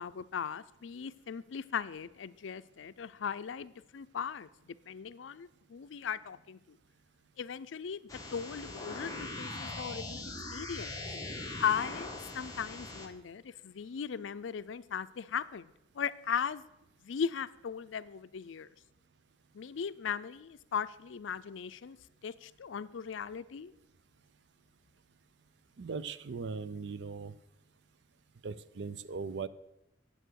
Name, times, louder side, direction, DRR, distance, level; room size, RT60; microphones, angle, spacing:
voice 1, 0.0-6.8 7.4-10.9 11.6-16.6 17.0-18.7 19.5-22.0 22.2-23.7, left 7 dB, 85° left, 15 dB, 0.4 m, -38 dB
sound 1, 8.1-13.1, left 2 dB, 20° left, 1.3 m, -41 dB
voice 2, 25.8-27.3 28.4-29.5, right 5 dB, 65° right, 16 dB, 0.5 m, -39 dB
9.0 x 7.7 x 6.3 m, 0.92 s
head